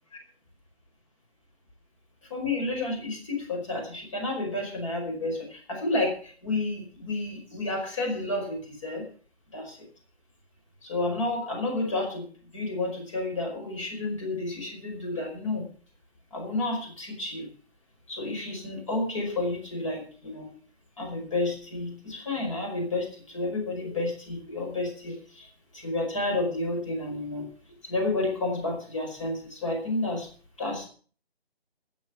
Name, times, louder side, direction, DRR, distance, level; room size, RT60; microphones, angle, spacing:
voice 1, 2.3-9.0 9.5-9.8 10.8-15.7 16.3-17.5 18.1-20.5 21.0-25.5 25.7-27.5 27.8-30.3 30.6-30.9, left 2 dB, 30° left, 1 dB, 5.2 m, -31 dB
18.0 x 7.6 x 7.2 m, 0.43 s
figure-of-eight pair, 175°, 32 cm